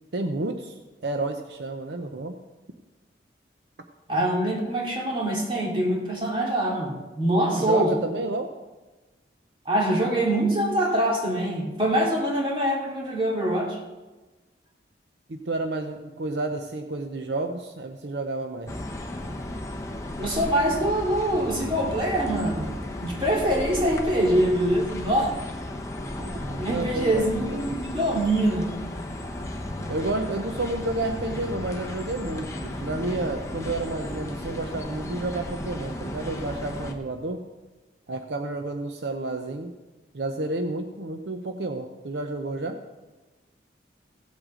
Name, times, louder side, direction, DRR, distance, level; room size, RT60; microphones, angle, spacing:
voice 1, 0.1-2.4 7.6-8.5 15.3-18.8 26.2-27.7 29.9-37.4 38.1-39.7 40.1-42.8, right 2 dB, 75° right, 6 dB, 0.7 m, -30 dB
voice 2, 4.1-7.9 9.6-13.8 20.2-25.3 26.6-28.7, right 1 dB, 30° right, -2 dB, 2.6 m, -24 dB
sound 1, 18.7-36.9, left 1 dB, 15° left, 0.9 m, -34 dB
16.0 x 8.0 x 3.8 m, 1.2 s
head